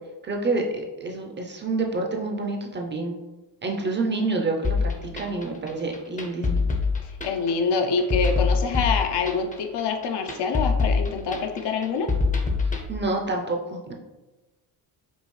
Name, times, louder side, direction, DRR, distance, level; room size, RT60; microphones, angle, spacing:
voice 1, 0.3-3.2 3.6-6.6 12.9-13.9, right 3 dB, 25° right, 1 dB, 0.6 m, -28 dB
sound 1, 4.6-12.9, left 4 dB, 15° left, 0.6 m, -25 dB
voice 2, 7.2-12.1, left 5 dB, 60° left, 4 dB, 0.7 m, -25 dB
5.3 x 2.4 x 3.1 m, 1.1 s
cardioid pair, 95°, 46 cm